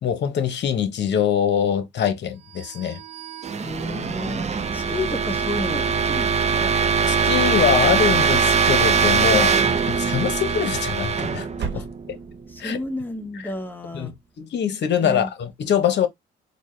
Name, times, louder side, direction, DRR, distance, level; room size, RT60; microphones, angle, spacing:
voice 1, 0.0-3.0 7.1-9.5 9.9-12.2 12.6-12.8 13.9-16.1, left 8 dB, 60° left, 0.9 m, -23 dB
sound 1, 2.7-12.5, right 6 dB, 35° right, 0.6 m, -22 dB
voice 2, 3.6-6.7 9.2-9.5 11.7-11.8 12.5-14.1 15.0-15.3, left 1 dB, 10° left, 1.1 m, -32 dB
sound 2, 11.6-12.4, right 6 dB, 65° right, 1.1 m, -36 dB
4.1 x 2.2 x 3.3 m
cardioid pair, 90°, 20 cm